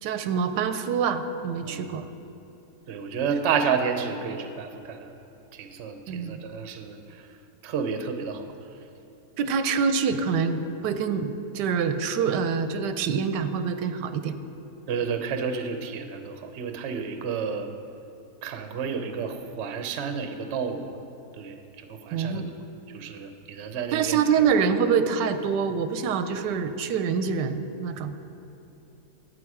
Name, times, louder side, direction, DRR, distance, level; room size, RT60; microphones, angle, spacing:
voice 1, 0.0-2.1 6.1-6.4 9.4-14.4 22.1-22.6 23.9-28.1, right 6 dB, 90° right, 10 dB, 1.3 m, -26 dB
voice 2, 2.9-5.2 5.5-7.4 7.6-8.5 14.9-17.7 18.4-20.8 21.3-22.4 22.9-24.2, right 6 dB, 55° right, 7 dB, 0.8 m, -31 dB
12.5 x 8.3 x 4.8 m, 2.9 s
omnidirectional pair, 1.8 m